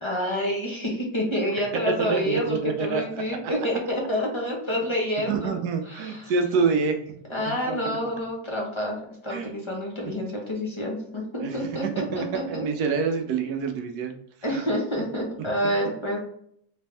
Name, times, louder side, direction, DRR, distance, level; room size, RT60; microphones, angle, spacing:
voice 1, 0.0-6.3 7.3-12.6 14.4-16.2, equal, 20° left, -2 dB, 0.8 m, -28 dB
voice 2, 1.9-3.0 5.3-7.0 7.5-8.0 9.3-9.5 11.4-11.6 11.8-14.1 14.5-14.7, right 5 dB, 70° right, 5 dB, 1.1 m, -27 dB
3.4 x 3.3 x 3.3 m, 0.67 s
omnidirectional pair, 1.8 m